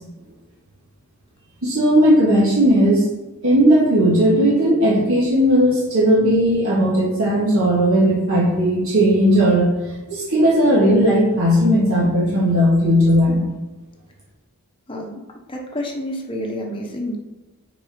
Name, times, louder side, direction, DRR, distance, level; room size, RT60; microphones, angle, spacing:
voice 1, 1.6-3.0 3.4-9.7 10.1-13.5, equal, 65° right, -6 dB, 2.1 m, -16 dB
voice 2, 14.9-15.2 15.5-17.2, left 1 dB, 25° left, 0 dB, 1.0 m, -29 dB
6.7 x 4.5 x 5.2 m, 1.1 s
head